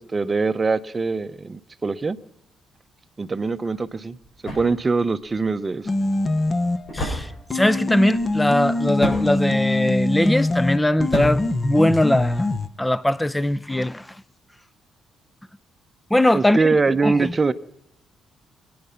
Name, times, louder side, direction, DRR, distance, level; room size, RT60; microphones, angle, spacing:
voice 1, 0.0-2.2 3.2-4.2 4.5-5.9 16.3-17.5, right 4 dB, 30° right, 0.8 m, -23 dB
sound 1, 3.6-12.4, equal, 55° left, 7.5 m, -34 dB
sound 2, 5.9-7.0 7.5-12.7, left 2 dB, 30° left, 1.0 m, -24 dB
voice 2, 6.9-12.5 12.8-14.1 16.1-16.7 17.0-17.5, left 1 dB, 10° left, 0.6 m, -21 dB
25.5 x 9.6 x 5.8 m
cardioid pair, 90°, 0 cm